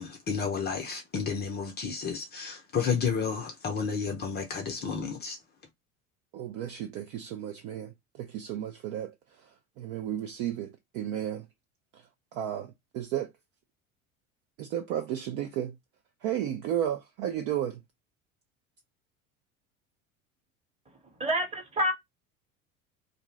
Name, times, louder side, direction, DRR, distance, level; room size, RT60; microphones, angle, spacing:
voice 1, 0.0-5.4, left 6 dB, 25° left, 0.6 m, -31 dB
voice 2, 6.3-9.1 9.8-11.4 12.3-13.3 14.6-15.7 16.2-17.8, right 10 dB, 35° right, 0.4 m, -33 dB
voice 3, 21.2-21.9, equal, 15° right, 1.0 m, -27 dB
2.6 x 2.1 x 3.1 m
figure-of-eight pair, 75°, 42 cm